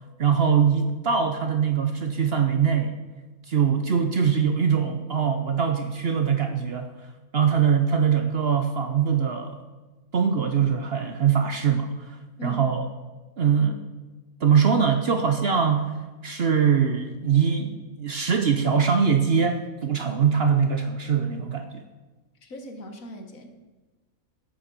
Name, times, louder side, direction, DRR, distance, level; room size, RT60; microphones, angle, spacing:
voice 1, 0.2-3.0 3.5-6.9 7.3-9.6 10.1-12.2 12.4-12.8 13.4-13.8 14.4-15.9 16.2-21.8, right 7 dB, 50° right, 6 dB, 0.8 m, -22 dB
voice 2, 22.4-23.5, right 1 dB, 65° left, 5 dB, 1.8 m, -37 dB
11.0 x 6.3 x 7.6 m, 1.2 s
omnidirectional pair, 1.6 m